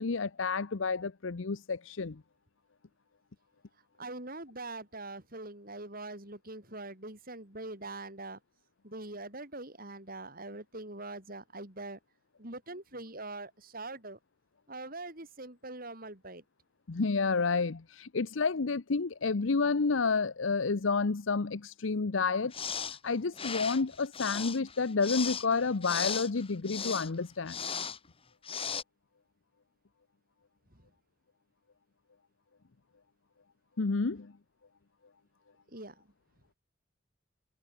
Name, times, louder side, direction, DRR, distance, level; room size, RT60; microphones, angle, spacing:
voice 1, 0.0-2.2 16.9-22.5 23.0-27.6 33.8-34.3, left 4 dB, 75° left, 0.8 m, -30 dB
voice 2, 4.0-8.4 8.8-12.0 12.4-14.2 14.7-16.4 35.7-35.9, right 2 dB, 45° right, 6.0 m, -43 dB
sound 1, 22.5-23.0 23.3-27.1 27.5-28.0 28.4-28.8, left 7 dB, 30° left, 3.1 m, -37 dB
head